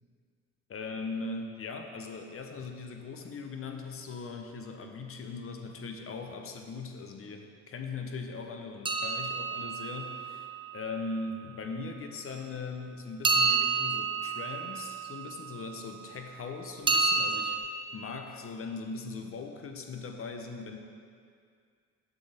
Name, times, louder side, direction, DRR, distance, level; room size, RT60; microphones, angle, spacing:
voice 1, 0.7-17.6 17.9-20.8, left 4 dB, 45° left, 4 dB, 0.8 m, -40 dB
sound 1, 8.8-10.9 13.2-15.6 16.9-17.6, right 4 dB, 15° right, 0.5 m, -29 dB
6.8 x 6.1 x 4.2 m, 2.2 s
cardioid pair, 90°, 30 cm